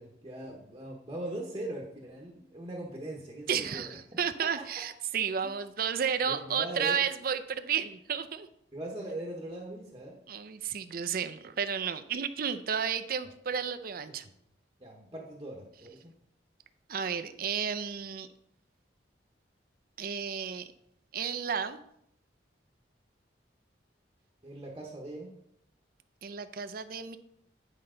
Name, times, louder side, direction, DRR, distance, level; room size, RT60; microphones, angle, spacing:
voice 1, 0.0-4.0 4.6-4.7 5.4-5.5 6.2-7.0 8.7-10.2 14.2-14.3 14.8-16.2 24.4-25.3, right 1 dB, 25° right, -1 dB, 1.1 m, -40 dB
voice 2, 3.5-8.5 10.3-14.2 16.9-18.3 20.0-20.7 21.1-21.8 26.2-27.2, right 7 dB, 50° right, 10 dB, 0.5 m, -32 dB
9.8 x 5.4 x 3.8 m, 0.74 s
head